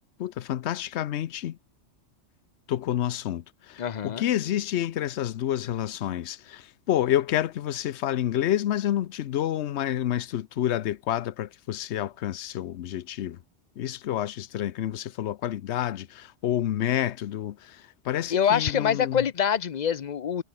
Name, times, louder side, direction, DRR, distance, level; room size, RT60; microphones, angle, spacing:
voice 1, 0.0-1.6 2.7-13.4 13.8-19.2, left 12 dB, 70° left, 1.0 m, -29 dB
voice 2, 3.8-4.2 18.3-20.4, left 8 dB, 45° left, 0.7 m, -25 dB
omnidirectional pair, 1.2 m